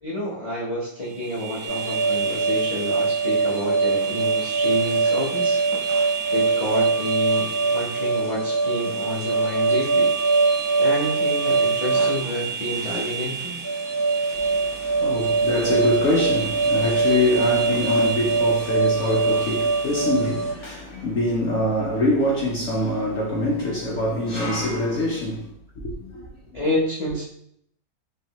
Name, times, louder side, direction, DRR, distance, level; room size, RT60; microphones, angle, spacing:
voice 1, 0.0-5.6 6.3-10.1 10.8-13.5 26.5-27.2, left 1 dB, 85° left, 0.3 m, -29 dB
sound 1, 1.0-20.3, right 6 dB, 70° right, 0.7 m, -33 dB
sound 2, 1.7-20.5, right 4 dB, 25° right, 0.4 m, -23 dB
voice 2, 14.3-25.5 25.8-26.6, left 1 dB, 65° left, 0.7 m, -24 dB
3.1 x 2.7 x 2.8 m
omnidirectional pair, 1.8 m